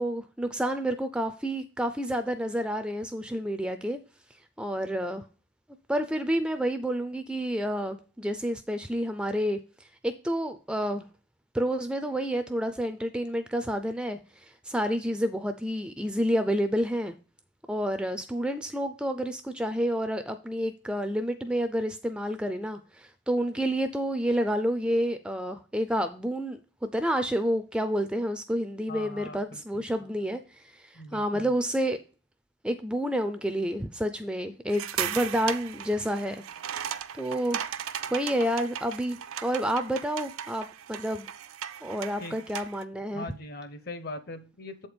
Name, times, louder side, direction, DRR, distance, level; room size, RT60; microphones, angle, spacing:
voice 1, 0.0-4.0 4.6-5.2 5.9-11.0 11.5-17.1 17.7-32.0 32.6-36.4 37.1-37.6 38.1-41.3 41.8-43.3, equal, 5° right, 8 dB, 0.3 m, -29 dB
voice 2, 28.9-29.8 30.9-31.5 42.2-42.4 43.1-44.9, left 2 dB, 50° left, 10 dB, 0.8 m, -41 dB
sound 1, 34.7-42.8, right 9 dB, 90° right, 0.5 m, -37 dB
7.6 x 4.3 x 5.0 m, 0.36 s
head